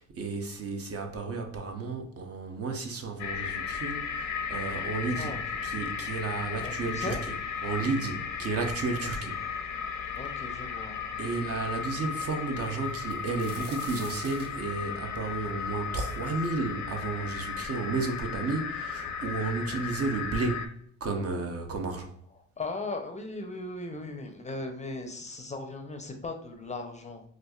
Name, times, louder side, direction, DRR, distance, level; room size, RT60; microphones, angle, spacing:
voice 1, 0.0-5.4 5.6-7.2 7.6-9.4 11.2-20.7 21.0-22.1, right 3 dB, 50° right, 4 dB, 0.7 m, -32 dB
sound 1, 3.2-20.7, left 6 dB, 75° left, 0.6 m, -35 dB
voice 2, 5.1-5.7 6.6-7.2 10.2-11.1 19.6-19.8 22.6-27.2, left 2 dB, 25° left, 4 dB, 0.5 m, -38 dB
sound 2, 12.8-16.7 17.2-17.3 18.0-18.1 18.4-19.1 19.9-20.0 20.4-20.6, right 3 dB, 80° right, 1.0 m, -48 dB
4.3 x 2.4 x 2.3 m, 0.65 s
cardioid pair, 90°, 30 cm